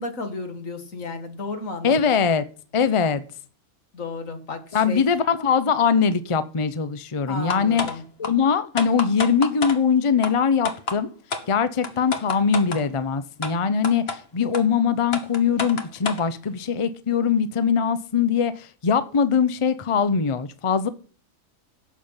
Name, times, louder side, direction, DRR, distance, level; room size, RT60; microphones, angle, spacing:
voice 1, 0.0-2.1 3.9-5.1 7.3-8.0, left 3 dB, 80° left, 2.2 m, -33 dB
voice 2, 1.8-2.4 2.7-3.2 4.7-7.9 8.2-11.1 11.5-20.9, left 6 dB, 30° left, 0.7 m, -22 dB
sound 1, 7.5-7.9 8.2-8.3 8.8-9.8 10.2-10.3 10.7-11.0 11.3-11.4 11.8-12.8 13.4-13.5 13.8-14.2 14.5-14.6 15.1-16.2, left 4 dB, 50° left, 1.5 m, -28 dB
11.5 x 7.6 x 5.7 m
omnidirectional pair, 1.3 m